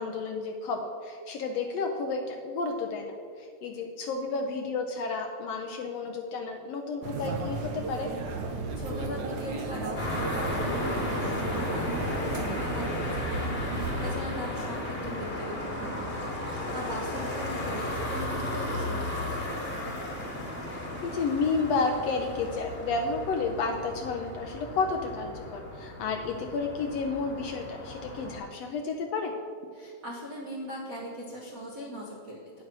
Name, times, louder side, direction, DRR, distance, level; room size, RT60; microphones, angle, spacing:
voice 1, 0.0-8.1 15.1-15.2 20.7-29.3, left 4 dB, 75° left, 3 dB, 1.6 m, -31 dB
sound 1, 7.0-14.1, right 3 dB, 85° right, 1.0 m, -34 dB
voice 2, 8.5-19.6 29.7-32.4, equal, 60° right, -3 dB, 0.9 m, -40 dB
sound 2, 10.0-28.4, left 1 dB, 30° left, 1.2 m, -35 dB
9.2 x 6.5 x 6.0 m, 2.3 s
omnidirectional pair, 3.5 m